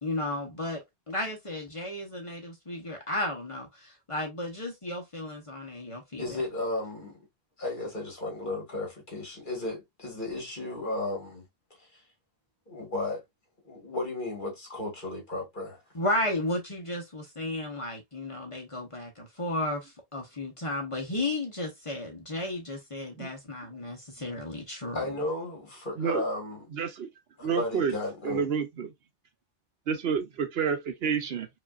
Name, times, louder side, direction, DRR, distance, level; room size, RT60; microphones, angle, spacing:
voice 1, 0.0-6.4 15.9-25.1, left 1 dB, 30° left, 1.0 m, -34 dB
voice 2, 6.2-7.2 7.6-11.4 11.8-12.0 12.7-13.2 13.6-15.8 24.9-26.7 27.4-28.5, left 2 dB, 50° left, 1.9 m, -34 dB
voice 3, 26.7-27.1 27.4-27.9 28.2-28.9 29.9-31.5, right 6 dB, 70° right, 0.9 m, -29 dB
4.9 x 2.5 x 2.4 m
omnidirectional pair, 1.1 m